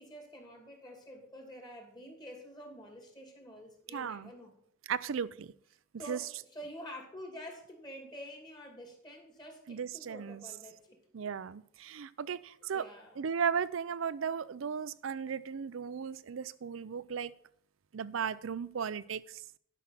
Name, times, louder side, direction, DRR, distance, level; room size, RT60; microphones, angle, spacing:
voice 1, 0.0-4.5 6.0-11.0 12.7-13.2, equal, 20° left, 1 dB, 2.6 m, -48 dB
voice 2, 3.9-4.3 4.9-5.5 6.1-6.2 9.7-10.4 11.1-12.9 13.2-17.3 17.9-19.4, right 7 dB, 85° right, 18 dB, 0.5 m, -36 dB
11.5 x 6.0 x 5.9 m, 0.64 s
head